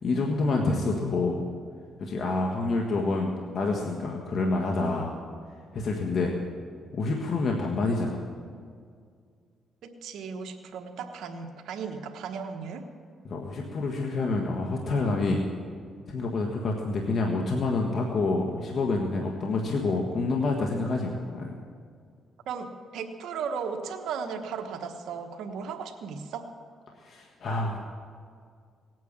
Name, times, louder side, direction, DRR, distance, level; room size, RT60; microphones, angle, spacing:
voice 1, 0.0-1.4 2.0-5.1 5.7-6.4 6.9-8.2 13.2-15.4 16.1-21.5 27.0-27.8, left 3 dB, 55° left, 1 dB, 1.6 m, -27 dB
voice 2, 9.8-12.9 22.5-26.5, right 6 dB, 80° right, 3 dB, 1.2 m, -36 dB
18.0 x 9.3 x 7.5 m, 2.1 s
cardioid pair, 90°, 0 cm